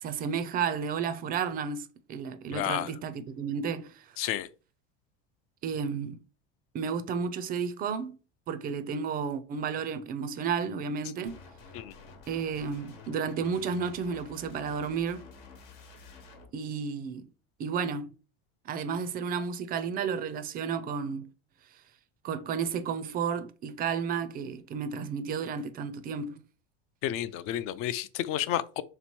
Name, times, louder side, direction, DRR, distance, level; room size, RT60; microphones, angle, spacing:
voice 1, 0.0-4.1 5.6-6.2 6.7-8.2 8.5-11.4 12.3-15.3 16.5-17.3 17.6-18.1 18.7-21.3 22.2-26.4, right 6 dB, 30° right, 0.4 m, -32 dB
voice 2, 2.5-2.9 4.2-4.5 11.7-11.9 27.0-28.8, left 12 dB, 50° left, 0.4 m, -31 dB
sound 1, 11.3-16.4, left 4 dB, 75° left, 1.2 m, -50 dB
3.4 x 3.0 x 4.4 m
cardioid pair, 145°, 30 cm